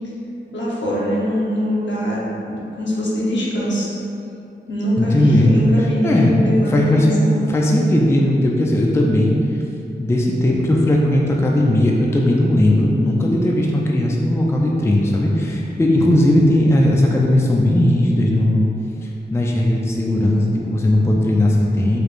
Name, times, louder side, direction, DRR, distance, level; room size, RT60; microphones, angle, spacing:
voice 1, 0.5-3.9 4.7-7.4, equal, 75° left, -6 dB, 0.9 m, -22 dB
voice 2, 5.0-5.5 6.0-6.3 6.7-7.2 7.5-9.6 10.0-18.7 19.0-22.0, left 1 dB, 15° left, -1 dB, 0.3 m, -17 dB
4.8 x 3.1 x 2.5 m, 2.8 s
wide cardioid pair, 115°, 19 cm